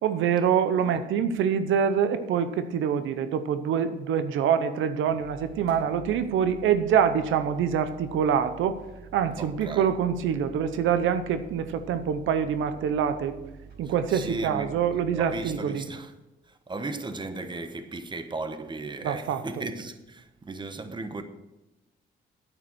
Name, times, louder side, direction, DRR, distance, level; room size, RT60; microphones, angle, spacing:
voice 1, 0.0-8.8 9.1-13.4 13.8-15.8 19.0-19.6, right 8 dB, 80° right, 0.8 m, -25 dB
sound 1, 5.1-15.5, right 6 dB, 55° right, 5.1 m, -48 dB
voice 2, 9.4-9.9 14.1-14.9 15.1-16.1 16.5-21.2, right 2 dB, 25° right, 1.1 m, -36 dB
9.2 x 9.2 x 6.2 m
cardioid pair, 90°, 20 cm